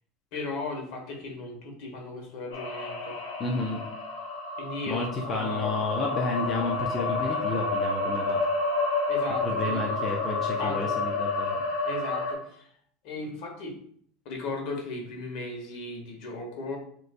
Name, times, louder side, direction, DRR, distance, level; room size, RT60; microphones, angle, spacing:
voice 1, 0.3-3.2 4.6-5.8 9.1-10.0 10.6-10.9 11.8-12.7 13.0-13.8 14.2-16.8, left 3 dB, 60° left, 2 dB, 1.4 m, -36 dB
sound 1, 2.5-12.3, left 3 dB, 90° left, 1.2 m, -30 dB
voice 2, 3.4-3.8 4.9-8.4 9.4-11.5, left 2 dB, 30° left, -1 dB, 0.7 m, -31 dB
7.8 x 3.1 x 2.2 m, 0.62 s
supercardioid pair, 135°, 0 cm